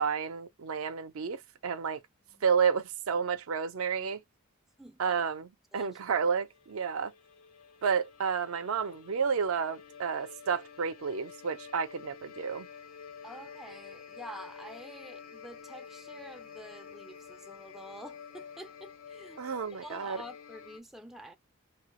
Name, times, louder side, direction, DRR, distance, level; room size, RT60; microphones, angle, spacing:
voice 1, 0.0-2.0 2.4-4.2 5.0-5.5 5.7-7.1 7.8-12.7 19.4-20.2, right 6 dB, 70° right, 0.5 m, -31 dB
voice 2, 4.8-5.2 5.7-6.0 13.2-19.4 19.7-21.4, equal, ahead, 0.4 m, -48 dB
sound 1, 6.5-20.8, left 6 dB, 75° left, 0.6 m, -49 dB
2.7 x 2.3 x 3.0 m
head